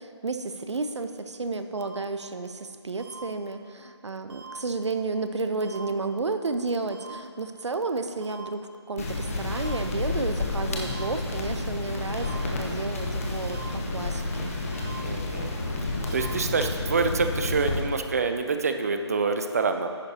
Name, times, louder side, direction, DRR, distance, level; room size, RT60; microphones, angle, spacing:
voice 1, 0.0-14.5, right 3 dB, 75° right, 8 dB, 0.7 m, -32 dB
sound 1, 1.8-1.9 3.0-3.1 4.3-4.5 5.6-5.8 6.9-7.1 8.2-8.4 9.5-9.7 10.8-11.0 12.1-12.3 13.4-13.6 14.7-14.9 16.0-16.2, right 4 dB, 55° right, 2.0 m, -47 dB
sound 2, 9.0-17.8, left 2 dB, 30° left, 0.9 m, -30 dB
voice 2, 15.0-15.5 16.1-19.9, right 4 dB, 35° right, 7 dB, 0.4 m, -26 dB
10.5 x 9.5 x 2.8 m, 2.2 s
figure-of-eight pair, 160°, 15 cm